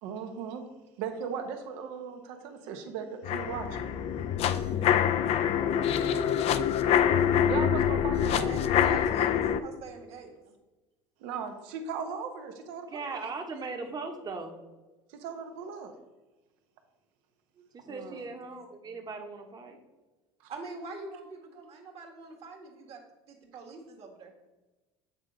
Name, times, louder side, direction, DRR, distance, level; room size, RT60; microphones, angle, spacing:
voice 1, 0.0-0.6 1.0-3.9 4.4-6.3 6.8-6.9 7.4-8.9 11.2-13.2 15.1-15.9 20.4-20.5, right 6 dB, 75° right, 6 dB, 0.9 m, -38 dB
sound 1, 3.2-9.6, left 9 dB, 50° left, 0.4 m, -25 dB
voice 2, 8.2-10.3 17.5-18.3 20.5-24.3, right 4 dB, 50° right, 2 dB, 1.5 m, -45 dB
voice 3, 12.9-14.5 17.7-19.8, right 4 dB, 30° right, 3 dB, 1.1 m, -38 dB
8.0 x 3.8 x 3.9 m, 1.1 s
supercardioid pair, 90°, 13 cm